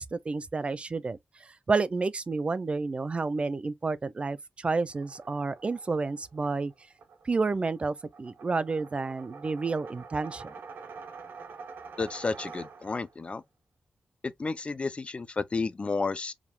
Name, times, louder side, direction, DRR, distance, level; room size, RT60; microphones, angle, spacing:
voice 1, 0.0-6.7 7.2-10.5, right 4 dB, 35° right, 0.5 m, -30 dB
Dark Rise Progressive, 4.9-13.2, right 5 dB, 85° right, 1.1 m, -47 dB
voice 2, 12.0-13.4 14.2-16.3, left 4 dB, 35° left, 0.6 m, -31 dB
4.8 x 3.5 x 2.3 m
wide cardioid pair, 100°, 3 cm